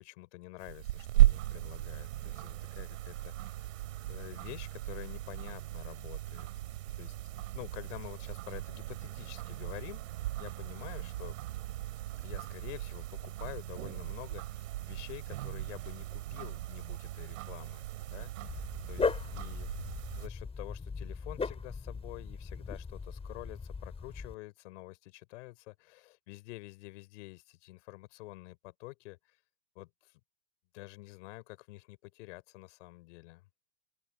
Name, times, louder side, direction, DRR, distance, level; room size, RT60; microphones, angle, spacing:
voice 1, 0.0-3.6 4.1-6.5 7.0-7.1 7.5-11.4 12.2-18.6 18.9-19.7 20.1-29.4 29.8-30.1 30.7-33.4, left 21 dB, 60° left, 4.1 m, -48 dB
sound 1, 0.6-20.3, right 15 dB, 70° right, 2.8 m, -35 dB
Dog, 18.4-24.3, left 4 dB, 15° left, 7.0 m, -38 dB
open air
hypercardioid pair, 110°, 41 cm